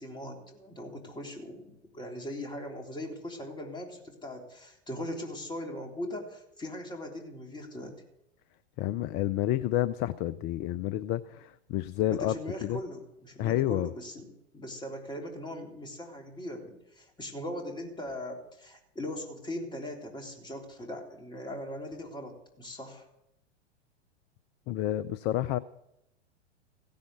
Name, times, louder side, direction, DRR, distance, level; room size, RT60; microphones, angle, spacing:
voice 1, 0.0-8.0 12.1-23.1, left 1 dB, 15° left, 1 dB, 3.6 m, -40 dB
voice 2, 8.8-12.8 13.4-13.9 24.7-25.6, left 13 dB, 30° left, 17 dB, 0.5 m, -29 dB
16.5 x 10.5 x 6.7 m, 0.83 s
figure-of-eight pair, 95°, 34 cm